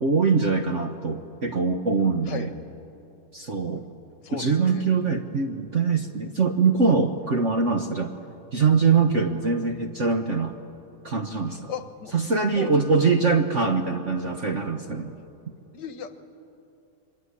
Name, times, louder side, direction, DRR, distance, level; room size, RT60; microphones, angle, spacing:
voice 1, 0.0-2.5 3.3-3.9 4.3-8.1 8.5-10.6 11.0-11.7 12.1-15.1, right 4 dB, 45° right, 4 dB, 1.1 m, -23 dB
voice 2, 4.2-4.8 11.5-12.1 12.5-13.2 15.7-16.2, left 7 dB, 60° left, 9 dB, 1.7 m, -37 dB
26.5 x 23.0 x 9.8 m, 2.8 s
omnidirectional pair, 2.3 m